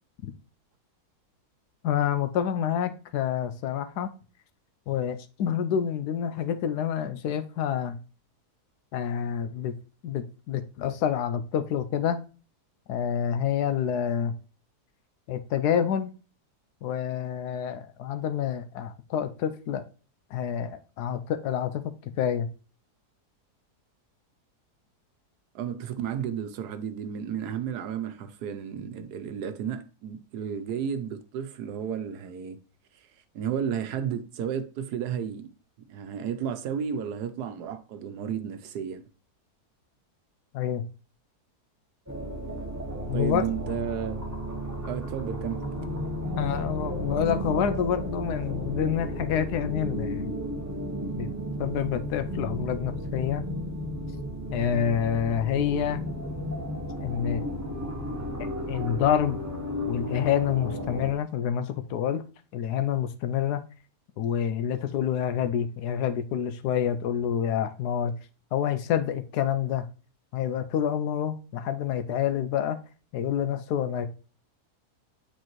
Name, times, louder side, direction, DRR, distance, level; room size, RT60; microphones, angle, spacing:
voice 1, 1.8-4.1 4.9-8.0 8.9-9.7 10.0-12.2 12.9-14.3 15.3-16.1 16.8-19.8 20.3-22.5 40.5-40.8 43.1-43.4 46.4-50.3 51.2-51.3 51.6-53.4 54.5-56.0 57.0-57.4 58.7-59.4 59.9-62.2 62.5-63.6 64.2-68.1 68.5-69.9 70.3-72.8 73.1-74.1, left 9 dB, 80° left, 1.2 m, -28 dB
voice 2, 25.5-32.6 33.3-35.5 35.9-39.0 43.1-44.2 44.8-45.6, right 8 dB, 80° right, 1.3 m, -32 dB
sound 1, 42.1-61.1, equal, 15° right, 0.7 m, -33 dB
8.1 x 4.3 x 3.0 m
omnidirectional pair, 1.7 m